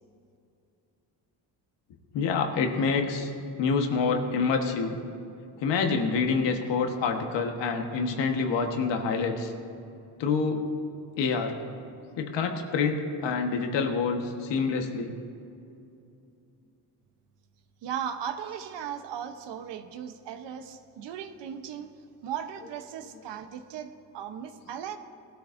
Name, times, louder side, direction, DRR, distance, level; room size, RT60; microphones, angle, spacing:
voice 1, 2.1-3.3 3.6-5.0 5.6-9.5 10.2-10.7 11.2-11.5 12.2-15.1, left 5 dB, 85° left, 4 dB, 1.4 m, -27 dB
voice 2, 17.8-25.0, right 8 dB, 85° right, 8 dB, 1.0 m, -37 dB
19.0 x 12.5 x 2.7 m, 2.6 s
cardioid pair, 115°, 42 cm